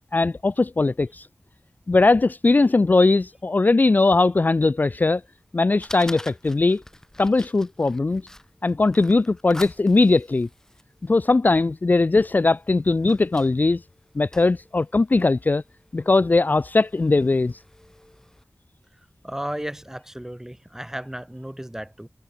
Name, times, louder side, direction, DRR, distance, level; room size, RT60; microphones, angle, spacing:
voice 1, 0.1-1.3 1.9-5.2 5.5-6.8 7.2-8.2 8.6-10.5 11.0-13.8 14.2-15.6 15.9-17.6, left 3 dB, 40° left, 0.5 m, -19 dB
Fire, 5.0-18.4, left 1 dB, 10° left, 4.1 m, -47 dB
voice 2, 19.2-22.1, right 1 dB, 10° right, 2.7 m, -34 dB
wide cardioid pair, 85°, 5 cm